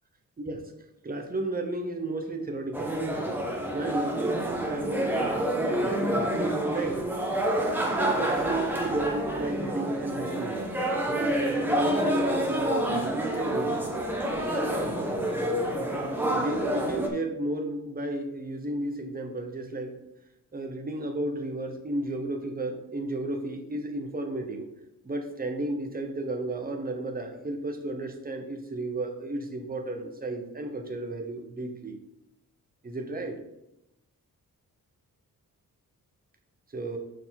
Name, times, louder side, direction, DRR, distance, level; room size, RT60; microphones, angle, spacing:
voice 1, 0.4-0.7 1.0-3.0 3.7-7.0 7.8-10.6 11.1-13.8 14.6-15.0 16.3-20.0 20.5-24.7 25.0-32.0 32.8-33.4 36.7-37.0, right 2 dB, 25° right, 4 dB, 1.0 m, -33 dB
sound 1, 2.7-17.1, right 1 dB, 5° right, 1.1 m, -28 dB
6.3 x 4.7 x 5.9 m, 0.88 s
wide cardioid pair, 160°, 34 cm